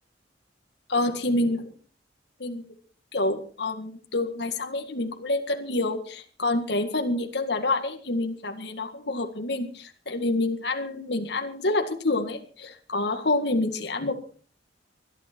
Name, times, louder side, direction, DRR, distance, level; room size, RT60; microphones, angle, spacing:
voice 1, 0.9-1.6 2.4-2.6 3.1-14.1, left 2 dB, 65° left, 5 dB, 1.9 m, -27 dB
21.5 x 12.0 x 4.5 m, 0.43 s
head